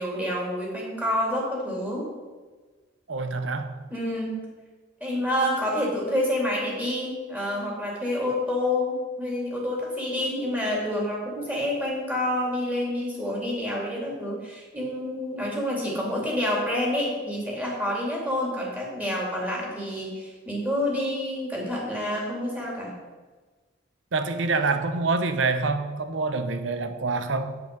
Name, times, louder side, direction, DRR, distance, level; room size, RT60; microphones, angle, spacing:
voice 1, 0.0-2.0 3.9-4.4 5.0-22.9, left 1 dB, 10° right, 2.8 m, -28 dB
voice 2, 3.1-3.9 24.1-27.6, right 3 dB, 70° right, 0.8 m, -26 dB
8.0 x 7.9 x 5.4 m
head